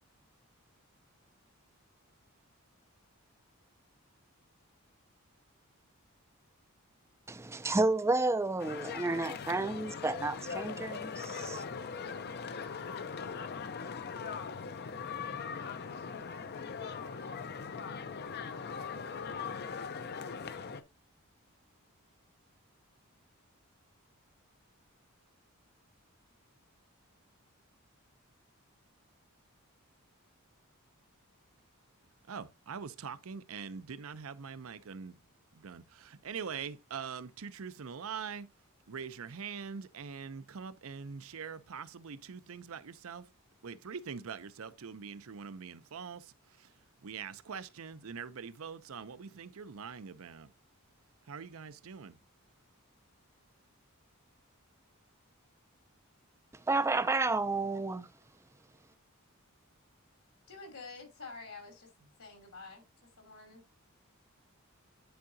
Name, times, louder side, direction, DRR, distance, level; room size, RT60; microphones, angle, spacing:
voice 1, 7.3-11.6 56.7-58.1, right 2 dB, 10° right, 0.4 m, -31 dB
sound 1, 8.6-20.8, left 5 dB, 50° left, 0.6 m, -40 dB
voice 2, 32.3-35.2 35.5-38.5 38.9-43.3 43.6-46.7 47.0-50.5 51.3-52.2, right 6 dB, 70° right, 0.6 m, -43 dB
voice 3, 60.5-62.9 63.2-63.6, left 3 dB, 75° left, 3.0 m, -48 dB
10.5 x 4.8 x 2.7 m
head